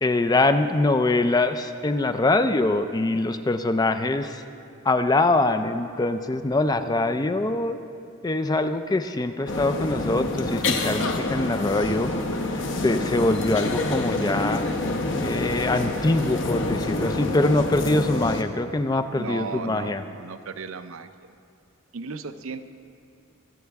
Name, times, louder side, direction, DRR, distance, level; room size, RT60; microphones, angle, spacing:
voice 1, 0.0-4.4 4.8-7.8 8.2-12.1 12.4-14.6 15.2-20.0, left 2 dB, 20° left, 9 dB, 0.4 m, -23 dB
sound 1, 9.5-18.4, left 2 dB, 60° left, 0.9 m, -27 dB
voice 2, 19.2-21.1 21.9-22.6, right 4 dB, 75° right, 10 dB, 0.6 m, -35 dB
23.5 x 8.2 x 3.5 m, 2.5 s
head